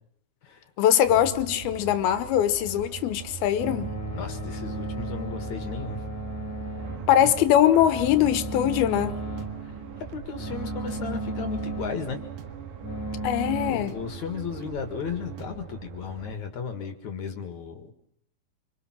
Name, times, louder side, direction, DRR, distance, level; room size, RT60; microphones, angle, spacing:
voice 1, 0.8-3.9 7.1-9.2 13.2-14.0, left 11 dB, 85° left, 3.0 m, -22 dB
sound 1, 1.0-16.4, right 9 dB, 80° right, 3.6 m, -43 dB
sound 2, 3.6-13.7, right 2 dB, 15° left, 3.1 m, -35 dB
voice 2, 4.1-6.0 7.2-7.3 9.6-9.7 10.1-12.2 13.7-17.9, left 6 dB, 55° left, 3.0 m, -35 dB
sound 3, 8.6-15.4, right 8 dB, 60° right, 2.7 m, -45 dB
26.0 x 25.0 x 6.1 m
omnidirectional pair, 4.3 m